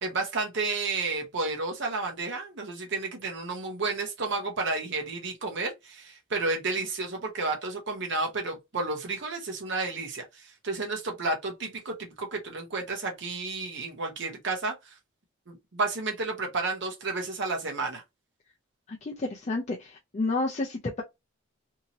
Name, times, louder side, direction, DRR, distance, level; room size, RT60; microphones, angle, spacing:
voice 1, 0.0-15.0 15.5-18.0, right 3 dB, 55° right, 0.8 m, -31 dB
voice 2, 18.9-21.0, left 2 dB, 35° left, 0.5 m, -30 dB
2.7 x 2.7 x 2.8 m
head